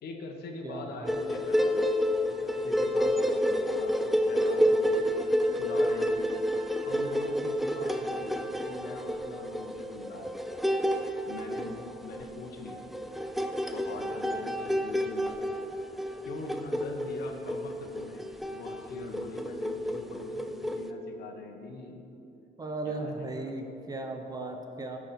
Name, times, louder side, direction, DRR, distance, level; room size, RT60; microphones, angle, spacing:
voice 1, 0.0-1.8 2.2-5.1 5.5-6.3 6.8-10.4 11.3-12.9 13.7-15.4 16.3-22.1 22.8-23.5, left 3 dB, 70° left, 3 dB, 1.3 m, -42 dB
voice 2, 0.6-1.1 22.6-25.0, right 2 dB, 20° right, 4 dB, 1.0 m, -36 dB
sound 1, 1.0-20.9, equal, ahead, 0.5 m, -29 dB
12.5 x 4.9 x 5.9 m, 2.9 s
cardioid pair, 100°, 17 cm